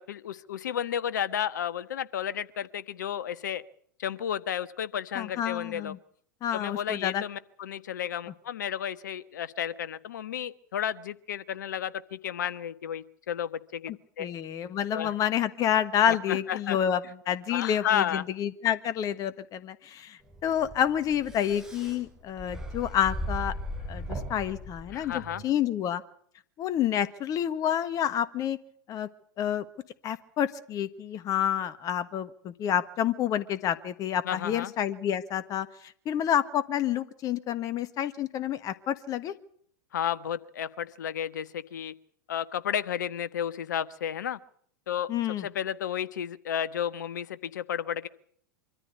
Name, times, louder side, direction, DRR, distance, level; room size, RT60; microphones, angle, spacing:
voice 1, 0.0-3.6 4.0-5.9 6.5-14.3 14.9-15.1 16.1-16.8 17.5-18.2 24.9-25.4 34.2-34.7 39.9-41.9 42.3-44.4 44.9-45.1 45.4-48.1, left 9 dB, 70° left, 15 dB, 1.3 m, -32 dB
voice 2, 5.1-6.0 6.4-7.2 13.9-23.5 23.9-26.0 26.6-28.6 28.9-29.1 29.4-29.6 30.0-39.3 45.1-45.5, left 10 dB, 35° left, 14 dB, 1.4 m, -29 dB
sound 1, 20.3-25.4, equal, 5° right, 7.3 m, -38 dB
25.0 x 14.0 x 8.2 m, 0.63 s
hypercardioid pair, 95°, 10 cm